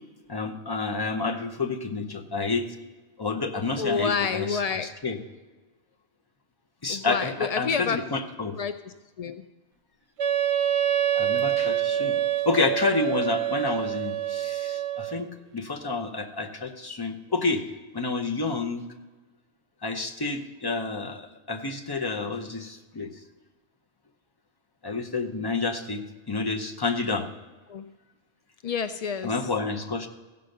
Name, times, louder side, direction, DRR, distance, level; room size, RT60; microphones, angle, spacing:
voice 1, 0.3-2.8 3.2-5.2 6.8-8.6 11.1-12.2 12.5-17.6 17.9-18.9 19.8-21.2 21.5-23.1 24.8-27.3 29.2-30.1, left 3 dB, 25° left, 3 dB, 0.7 m, -29 dB
voice 2, 3.8-4.9 6.9-8.0 8.6-9.4 27.7-27.9 28.6-29.4, left 6 dB, 80° left, 10 dB, 0.3 m, -29 dB
Wind instrument woodwind instrument, 10.2-15.3, right 10 dB, 80° right, 0.9 m, -26 dB
15.5 x 5.4 x 6.5 m, 1.3 s
omnidirectional pair, 1.2 m